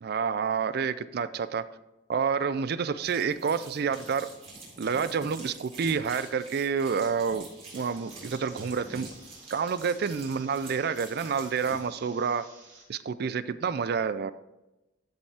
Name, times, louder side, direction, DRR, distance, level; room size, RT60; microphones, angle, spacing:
voice 1, 0.0-1.6 2.1-4.3 4.8-7.5 7.7-9.1 9.5-12.4 12.9-14.3, right 6 dB, 60° right, 14 dB, 0.4 m, -28 dB
sound 1, 3.0-11.8, right 2 dB, 35° right, 3.6 m, -46 dB
sound 2, 7.7-12.8, right 3 dB, 80° right, 3.5 m, -53 dB
14.0 x 5.4 x 3.4 m, 0.98 s
head